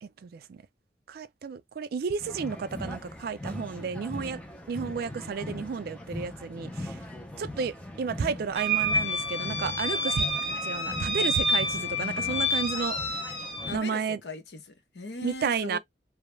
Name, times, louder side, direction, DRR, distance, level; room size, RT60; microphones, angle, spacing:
voice 1, 0.0-0.6 1.1-4.4 4.7-7.0 7.4-10.3 10.6-13.0 13.7-14.2 15.2-15.8, right 5 dB, 55° right, 0.3 m, -32 dB
sound 1, 2.2-13.8, left 1 dB, 5° left, 0.5 m, -40 dB
sound 2, 8.6-13.8, left 1 dB, 35° left, 1.0 m, -28 dB
voice 2, 13.7-15.8, left 2 dB, 65° left, 0.7 m, -39 dB
2.2 x 2.0 x 3.0 m
head